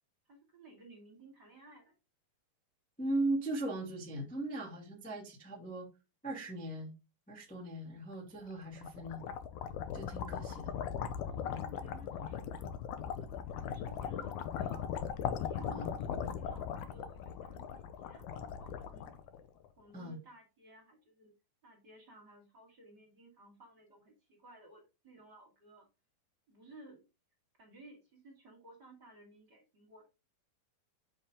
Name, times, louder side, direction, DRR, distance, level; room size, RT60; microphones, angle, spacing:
voice 1, 0.2-2.0 11.2-12.7 13.2-19.1 19.8-21.3 21.6-25.9 26.5-27.0 27.6-30.1, right 1 dB, 35° right, 2.1 m, -57 dB
voice 2, 3.0-5.9 6.2-6.9 7.3-9.2 9.9-10.8 15.7-15.9 19.9-20.2, right 2 dB, 5° left, 1.1 m, -38 dB
sound 1, 8.5-19.7, left 8 dB, 80° left, 1.7 m, -39 dB
7.2 x 6.4 x 3.7 m
omnidirectional pair, 4.5 m